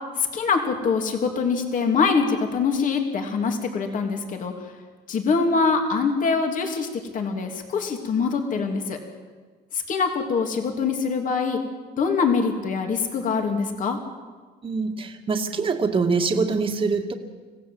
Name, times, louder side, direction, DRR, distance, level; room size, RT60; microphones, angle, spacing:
voice 1, 0.2-4.5 5.1-6.9 7.1-9.0 9.7-11.6 12.0-14.0, left 5 dB, 50° left, 4 dB, 3.1 m, -24 dB
voice 2, 14.6-17.1, right 4 dB, 30° right, 3 dB, 2.0 m, -24 dB
26.0 x 16.5 x 7.9 m, 1.4 s
cardioid pair, 110°, 17 cm